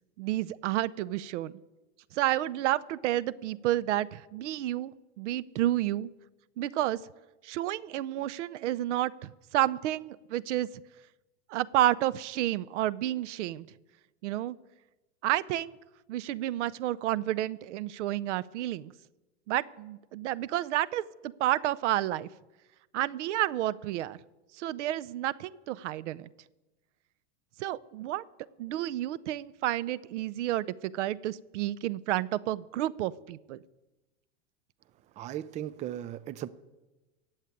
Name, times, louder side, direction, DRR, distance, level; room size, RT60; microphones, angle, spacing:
voice 1, 0.2-1.5 2.1-4.9 5.2-6.1 6.6-7.0 7.4-10.7 11.5-13.7 14.2-14.6 15.2-15.8 16.1-18.9 19.5-22.3 22.9-24.2 24.5-26.3 27.6-28.2 28.6-33.6, right 14 dB, 75° right, 0.7 m, -30 dB
voice 2, 35.2-36.5, right 11 dB, 20° right, 0.4 m, -37 dB
15.5 x 7.4 x 9.3 m
supercardioid pair, 125°, 36 cm